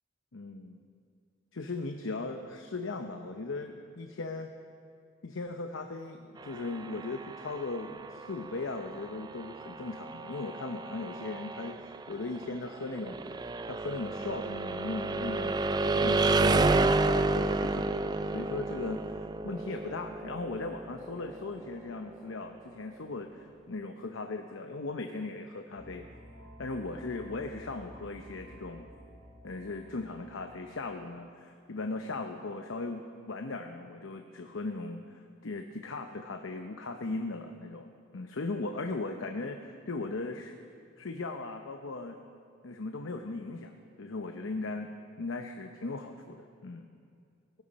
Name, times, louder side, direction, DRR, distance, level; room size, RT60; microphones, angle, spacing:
voice 1, 0.3-0.8 1.5-4.5 5.2-13.2 13.7-15.5 15.9-26.1 26.6-28.9 29.4-33.0 33.3-40.5 41.0-42.2 42.6-43.7 44.0-46.9, left 3 dB, 90° left, 5 dB, 0.8 m, -38 dB
sound 1, 6.4-22.2, right 3 dB, 20° right, 0.3 m, -31 dB
sound 2, 25.7-31.3, equal, 55° right, 4.6 m, -52 dB
17.5 x 14.0 x 4.2 m, 2.3 s
head